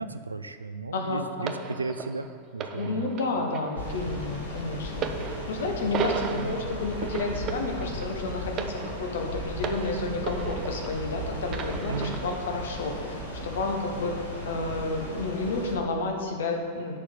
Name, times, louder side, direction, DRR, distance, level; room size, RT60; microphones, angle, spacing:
voice 1, 0.0-3.1 6.2-6.5 11.9-12.2, right 3 dB, 80° right, 11 dB, 0.4 m, -35 dB
voice 2, 0.9-1.6 2.7-5.0 5.5-13.2 13.4-14.2 14.4-17.0, left 3 dB, 60° left, 2 dB, 1.2 m, -31 dB
sound 1, 1.5-11.1 11.5-12.5 13.3-13.5, right 6 dB, 30° right, 0.6 m, -36 dB
sound 2, 3.8-15.7, left 1 dB, 80° left, 1.8 m, -36 dB
6.7 x 5.7 x 7.1 m, 2.1 s
figure-of-eight pair, 90°, 0 cm